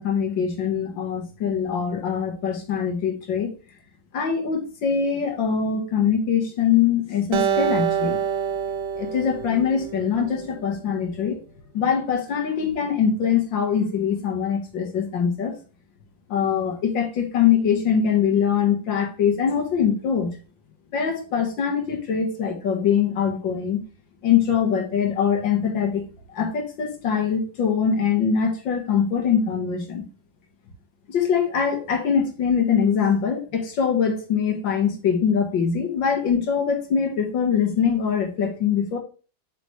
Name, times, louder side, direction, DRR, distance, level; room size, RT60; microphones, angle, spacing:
voice 1, 0.0-3.5 4.1-8.2 8.9-11.4 11.7-15.5 16.3-20.3 20.9-23.8 24.2-26.1 26.3-30.0 31.1-39.0, left 7 dB, 80° left, 4 dB, 2.1 m, -23 dB
Acoustic guitar, 7.3-10.7, right 8 dB, 70° right, 1.5 m, -26 dB
8.0 x 5.1 x 3.2 m, 0.34 s
omnidirectional pair, 2.0 m